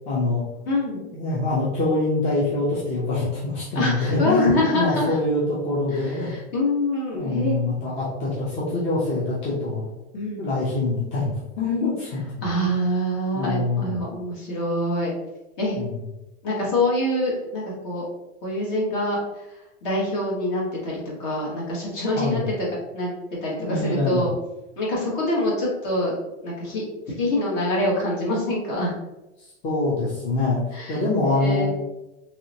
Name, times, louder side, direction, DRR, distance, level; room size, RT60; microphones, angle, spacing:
voice 1, 0.1-0.4 1.1-6.3 7.1-9.9 10.4-12.4 13.3-13.9 15.8-16.0 22.2-22.5 23.6-24.3 29.4-30.6 30.9-31.7, left 2 dB, 20° left, -7 dB, 0.5 m, -25 dB
voice 2, 0.7-1.0 3.7-5.2 5.9-7.6 10.1-10.5 12.4-15.1 15.6-15.8 16.4-18.0 18.4-19.4 19.8-22.4 22.9-23.1 23.4-24.3 24.8-26.1 26.4-26.8 27.2-28.9 30.7-31.7, left 1 dB, 50° left, -4 dB, 1.3 m, -25 dB
3.2 x 2.8 x 2.7 m, 0.98 s
supercardioid pair, 155°, 34 cm